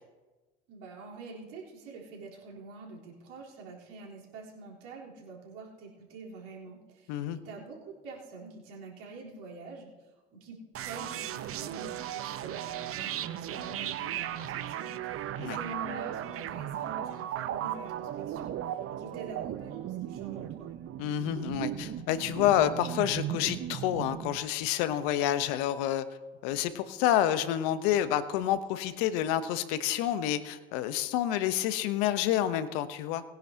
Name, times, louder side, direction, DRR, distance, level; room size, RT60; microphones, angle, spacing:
voice 1, 0.7-9.9 10.3-20.7, right 3 dB, 75° right, -3 dB, 3.8 m, -46 dB
voice 2, 7.1-7.4 15.4-15.6 21.0-26.0 26.4-33.2, left 11 dB, 75° left, 12 dB, 1.0 m, -28 dB
sound 1, 10.7-24.4, right 11 dB, 50° right, 0.8 m, -36 dB
20.5 x 10.0 x 2.8 m, 1.2 s
hypercardioid pair, 70°, 29 cm